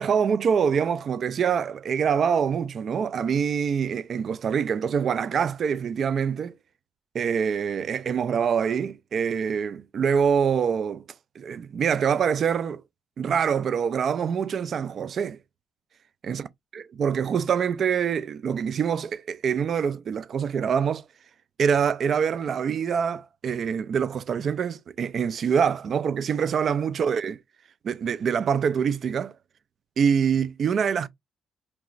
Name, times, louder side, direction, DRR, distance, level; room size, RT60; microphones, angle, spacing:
voice 1, 0.0-6.5 7.1-11.0 11.4-12.8 13.2-15.4 16.2-16.4 17.0-21.0 21.6-27.3 27.8-29.3 30.0-31.1, right 7 dB, 55° right, 0.4 m, -25 dB
4.5 x 2.9 x 2.5 m
cardioid pair, 90°, 0 cm